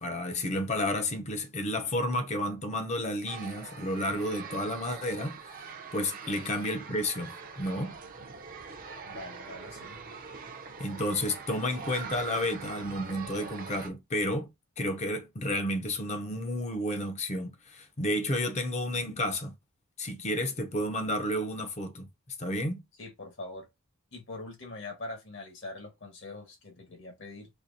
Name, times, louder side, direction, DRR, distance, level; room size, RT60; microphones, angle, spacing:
voice 1, 0.0-5.4 5.9-8.0 10.8-14.5 14.8-19.5 20.0-22.1 22.4-22.8, left 1 dB, 30° left, 0.6 m, -31 dB
sound 1, 3.3-13.9, right 5 dB, 40° right, 0.5 m, -43 dB
voice 2, 9.0-10.0 23.0-23.7 24.1-27.5, left 2 dB, 55° left, 1.2 m, -43 dB
4.3 x 2.8 x 2.6 m
head